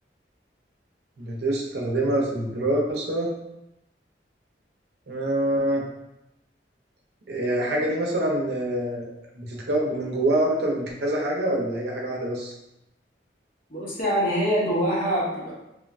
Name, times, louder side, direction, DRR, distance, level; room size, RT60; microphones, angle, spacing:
voice 1, 1.2-3.3 5.1-5.8 7.3-12.5, right 1 dB, 65° right, -2 dB, 0.6 m, -25 dB
voice 2, 13.7-15.5, equal, 50° left, -7 dB, 0.9 m, -24 dB
3.1 x 2.1 x 2.4 m, 0.89 s
head